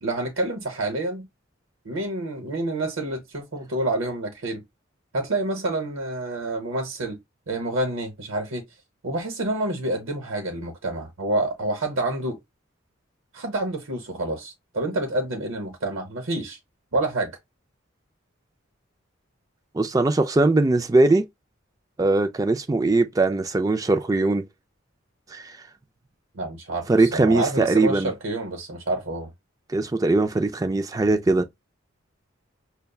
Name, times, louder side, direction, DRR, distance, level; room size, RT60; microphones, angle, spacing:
voice 1, 0.0-1.3 1.8-4.6 5.1-7.2 7.5-8.6 9.0-12.4 13.3-16.6 16.9-17.4 26.3-29.3, right 2 dB, 75° right, 0.9 m, -28 dB
voice 2, 19.7-21.3 22.0-24.5 25.3-25.5 26.9-28.1 29.7-31.5, right 2 dB, 15° right, 0.4 m, -20 dB
6.6 x 2.2 x 2.3 m
head